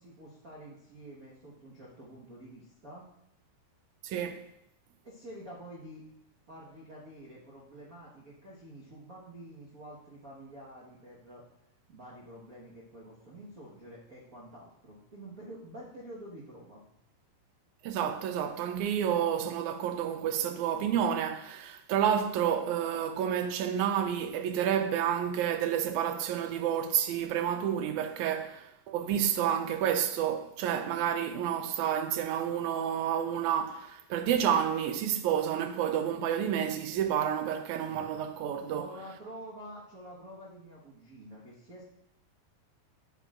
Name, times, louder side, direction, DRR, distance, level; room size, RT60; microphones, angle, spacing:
voice 1, 0.0-3.0 5.0-6.0 6.5-11.4 11.9-16.8 38.7-41.8, right 1 dB, 50° right, 1.0 m, -48 dB
voice 2, 4.0-4.4 17.8-38.9, right 9 dB, 80° right, 1.8 m, -30 dB
13.0 x 7.7 x 2.5 m
omnidirectional pair, 3.7 m